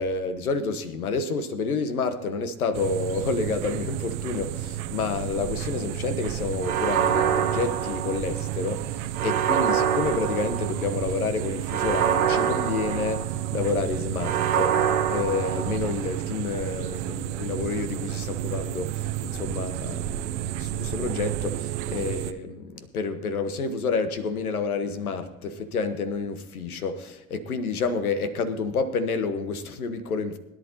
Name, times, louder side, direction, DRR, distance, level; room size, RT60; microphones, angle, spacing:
voice 1, 0.0-30.4, left 4 dB, 75° left, 1.4 m, -29 dB
sound 1, 2.7-22.3, right 12 dB, 50° right, 0.9 m, -32 dB
sound 2, 6.6-8.5 9.1-11.0 11.7-13.5 14.2-16.1, right 8 dB, 70° right, 1.2 m, -26 dB
21.0 x 11.0 x 2.9 m
figure-of-eight pair, 75°, 44 cm